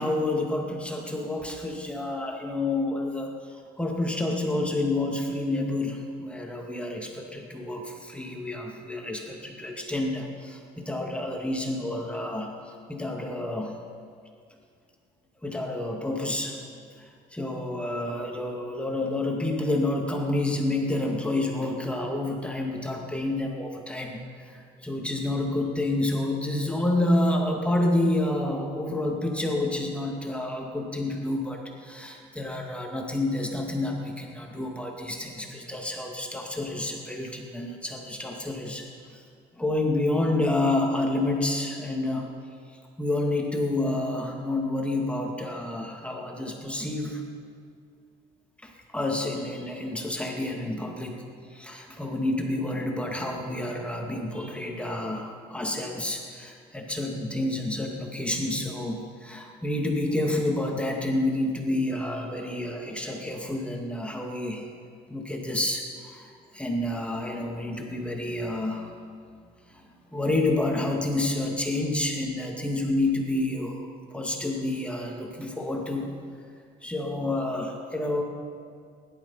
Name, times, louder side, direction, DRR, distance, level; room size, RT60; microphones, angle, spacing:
voice 1, 0.0-13.8 15.4-16.6 17.0-39.2 39.6-42.2 42.7-47.2 48.6-64.7 65.1-68.9 69.7-76.1 76.8-78.2, left 2 dB, 5° left, 1 dB, 2.0 m, -29 dB
17.0 x 11.5 x 5.6 m, 2.2 s
cardioid pair, 110°, 17 cm